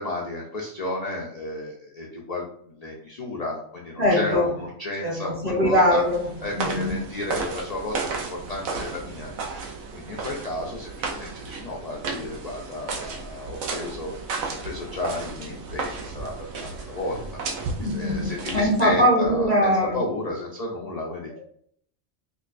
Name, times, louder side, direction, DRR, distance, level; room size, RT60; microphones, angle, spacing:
voice 1, 0.0-6.0 6.4-9.3 9.6-21.3, left 2 dB, 60° left, -2 dB, 0.4 m, -33 dB
voice 2, 4.0-4.5 5.0-6.9 17.8-20.0 21.3-21.4, equal, 35° right, -3 dB, 0.9 m, -22 dB
sound 1, 5.7-19.0, right 4 dB, 85° right, 1.1 m, -34 dB
4.9 x 2.2 x 2.4 m, 0.63 s
omnidirectional pair, 1.4 m